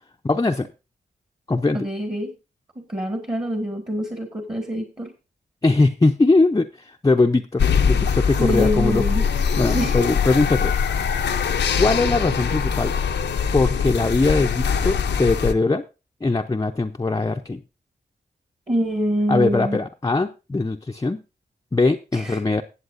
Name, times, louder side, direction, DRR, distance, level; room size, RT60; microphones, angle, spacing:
voice 1, 0.2-0.7 1.5-1.8 5.6-9.0 9.6-10.8 11.8-12.9 13.5-15.8 16.2-17.6 19.3-21.2 21.7-22.6, left 3 dB, 20° left, 3 dB, 0.6 m, -21 dB
voice 2, 1.7-2.3 2.7-5.1 8.4-9.3 9.7-10.1 18.7-19.8 22.1-22.4, equal, 30° right, 5 dB, 1.7 m, -25 dB
sound 1, 7.6-15.5, left 6 dB, 85° left, 0.7 m, -22 dB
21.0 x 7.6 x 2.6 m, 0.29 s
cardioid pair, 60°, 18 cm